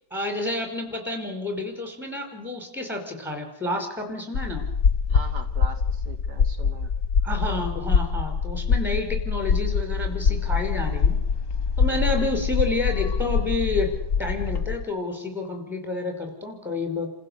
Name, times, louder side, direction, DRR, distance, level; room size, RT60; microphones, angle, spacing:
voice 1, 0.1-4.6 7.2-11.2 11.8-13.9 14.2-17.1, left 2 dB, ahead, 4 dB, 5.3 m, -29 dB
sound 1, 4.3-14.8, left 6 dB, 55° left, 1.4 m, -24 dB
voice 2, 5.1-6.9 11.9-12.2, right 4 dB, 75° right, 7 dB, 2.4 m, -41 dB
29.5 x 15.5 x 8.4 m, 0.82 s
omnidirectional pair, 1.8 m